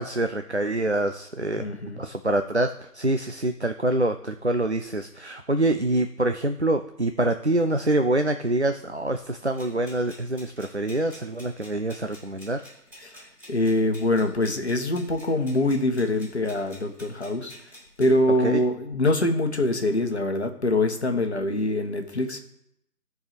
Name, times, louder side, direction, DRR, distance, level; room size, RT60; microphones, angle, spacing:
voice 1, 0.0-1.7 2.0-12.6 18.4-18.6, right 1 dB, 45° right, 8 dB, 0.4 m, -25 dB
voice 2, 1.6-2.1 13.0-13.2 13.5-17.5 18.0-22.4, left 1 dB, 45° left, 4 dB, 1.3 m, -24 dB
sound 1, 9.5-18.1, left 1 dB, 10° right, 4.2 m, -49 dB
13.5 x 4.6 x 5.1 m, 0.79 s
figure-of-eight pair, 170°, 48 cm